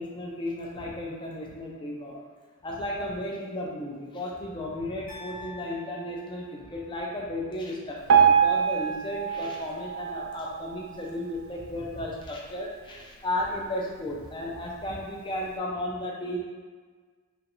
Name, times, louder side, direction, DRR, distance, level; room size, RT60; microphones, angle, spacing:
voice 1, 0.0-2.2 2.6-16.4, left 1 dB, 20° left, -2 dB, 0.4 m, -34 dB
sound 1, 5.1-7.2, equal, 40° left, 0.8 m, -46 dB
Piano, 8.1-11.2 11.7-11.9 12.2-12.3 13.0-13.1 13.6-13.7, right 7 dB, 65° right, 0.4 m, -24 dB
3.0 x 2.4 x 2.9 m, 1.5 s
head